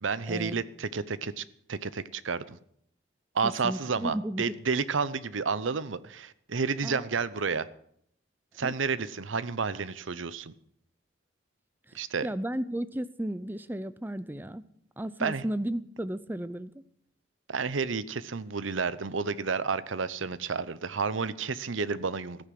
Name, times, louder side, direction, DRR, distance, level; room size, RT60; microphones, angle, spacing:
voice 1, 0.0-1.4 1.7-2.6 3.3-7.7 8.6-10.5 11.9-12.3 15.2-15.4 17.5-22.5, right 5 dB, 80° right, 16 dB, 0.8 m, -31 dB
voice 2, 3.4-4.5 6.8-7.1 8.6-8.7 12.2-14.6 15.0-16.7, right 1 dB, 10° right, 15 dB, 0.6 m, -34 dB
14.5 x 10.0 x 7.7 m, 0.68 s
head